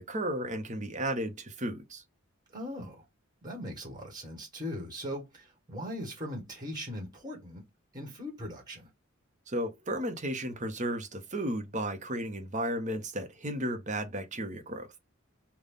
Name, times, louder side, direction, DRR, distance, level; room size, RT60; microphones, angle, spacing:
voice 1, 0.0-2.0 9.5-14.9, right 1 dB, 35° right, 0.9 m, -34 dB
voice 2, 2.5-3.0 3.4-7.6 7.9-8.9, equal, 20° right, 1.5 m, -39 dB
3.9 x 2.3 x 3.4 m
head